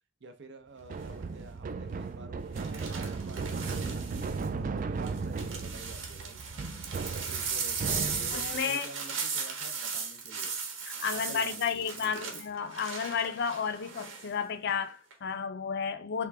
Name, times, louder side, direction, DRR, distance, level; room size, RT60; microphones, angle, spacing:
voice 1, 0.2-6.4 6.9-10.5 11.1-12.3, right 3 dB, 60° right, 0.7 m, -49 dB
sound 1, 0.8-8.6, right 4 dB, 40° right, 0.3 m, -36 dB
sound 2, 0.9-1.2 2.6-4.5 5.0-14.3 14.7-15.1, right 5 dB, 85° right, 1.3 m, -37 dB
voice 2, 8.3-9.0 10.9-16.3, left 6 dB, 55° left, 0.5 m, -32 dB
3.7 x 3.5 x 3.3 m
head